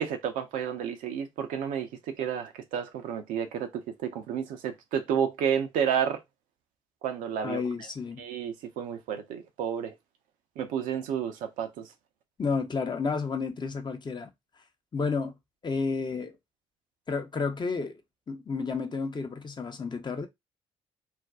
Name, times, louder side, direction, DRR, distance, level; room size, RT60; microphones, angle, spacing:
voice 1, 0.0-6.2 7.0-7.6 8.2-9.9 10.6-11.9, right 8 dB, 70° right, 0.6 m, -31 dB
voice 2, 7.4-8.2 12.4-14.3 14.9-15.3 15.6-16.4 17.1-18.0 18.3-20.3, left 4 dB, 30° left, 0.7 m, -31 dB
2.5 x 2.2 x 3.5 m
hypercardioid pair, 45°, 14 cm